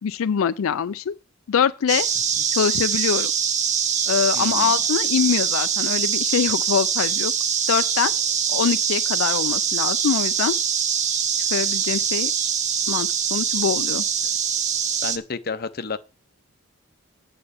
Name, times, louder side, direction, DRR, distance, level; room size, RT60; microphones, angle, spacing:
voice 1, 0.0-1.1 1.5-2.1 2.5-3.3 4.1-7.3 7.7-8.1 8.5-10.5 11.5-12.3 12.9-14.0, left 7 dB, 80° left, 0.4 m, -23 dB
sound 1, 1.9-15.2, right 7 dB, 35° right, 0.8 m, -23 dB
voice 2, 4.3-4.7 15.0-16.0, left 4 dB, 45° left, 0.7 m, -31 dB
8.8 x 5.3 x 7.0 m
head